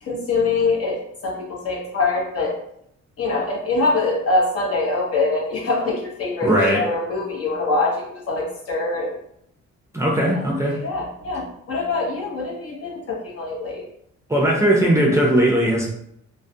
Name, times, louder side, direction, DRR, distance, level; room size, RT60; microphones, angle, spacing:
voice 1, 0.0-2.6 3.2-9.2 10.3-10.5 10.8-13.9, left 3 dB, 50° left, -2 dB, 0.8 m, -24 dB
voice 2, 6.4-6.8 9.9-10.8 14.3-15.9, right 1 dB, 10° right, -4 dB, 0.5 m, -18 dB
2.3 x 2.2 x 2.6 m, 0.72 s
cardioid pair, 90°, 30 cm